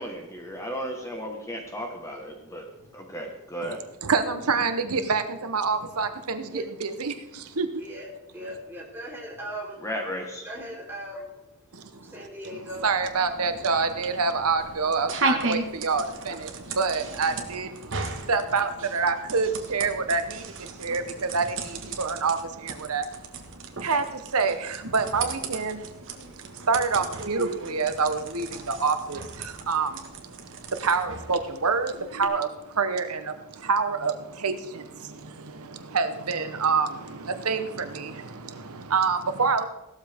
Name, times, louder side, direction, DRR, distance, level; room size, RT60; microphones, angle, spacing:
voice 1, 0.0-2.6 2.9-3.8 9.8-10.5, equal, 15° left, 1.3 m, -34 dB
voice 2, 3.6-7.7 11.7-23.1 23.7-25.9 26.1-39.7, right 4 dB, 80° right, 1.0 m, -27 dB
voice 3, 8.3-9.8 10.5-11.3 12.0-12.8, equal, 10° right, 3.7 m, -38 dB
sound 1, 12.7-32.2, right 3 dB, 60° right, 1.7 m, -36 dB
16.5 x 13.0 x 3.6 m
head